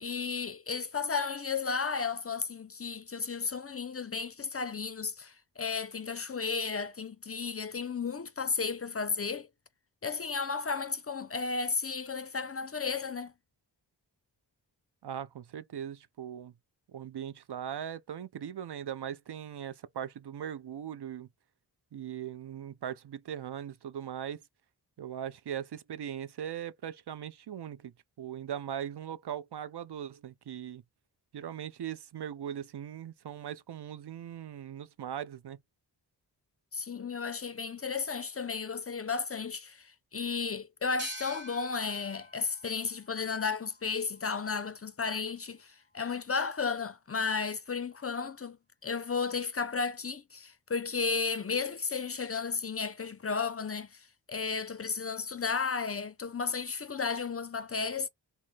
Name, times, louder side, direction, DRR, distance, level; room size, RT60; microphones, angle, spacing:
voice 1, 0.0-9.5 10.0-13.3 36.7-48.6 48.8-58.1, left 5 dB, 35° left, 0.5 m, -33 dB
voice 2, 15.0-16.5 16.9-21.3 21.9-24.4 25.0-27.9 28.2-30.8 31.3-35.6, right 9 dB, 65° right, 0.6 m, -39 dB
sound 1, 41.0-44.4, right 1 dB, 25° right, 0.9 m, -47 dB
3.1 x 2.1 x 3.9 m
cardioid pair, 45°, 44 cm